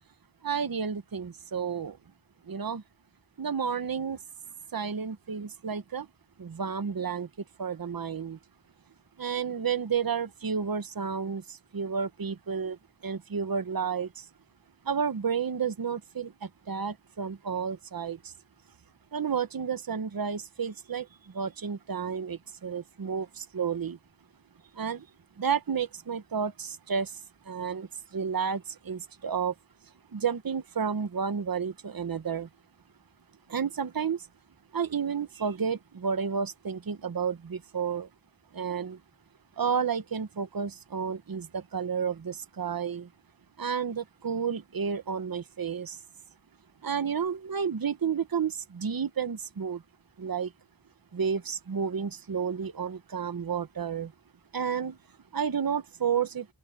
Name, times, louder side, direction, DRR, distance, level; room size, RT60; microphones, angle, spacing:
voice 1, 0.4-2.0 2.4-2.8 3.4-4.2 4.7-6.1 6.4-7.3 7.6-8.4 9.2-14.3 14.8-18.3 19.1-24.0 24.7-25.1 25.4-27.2 27.4-29.5 30.1-32.5 33.5-34.3 34.7-38.1 38.5-39.0 39.6-43.1 43.6-46.0 46.8-49.8 50.2-50.5 51.1-54.1 54.5-55.0 55.3-56.5, right 6 dB, 50° right, 1.0 m, -31 dB
open air
wide cardioid pair, 75°, 43 cm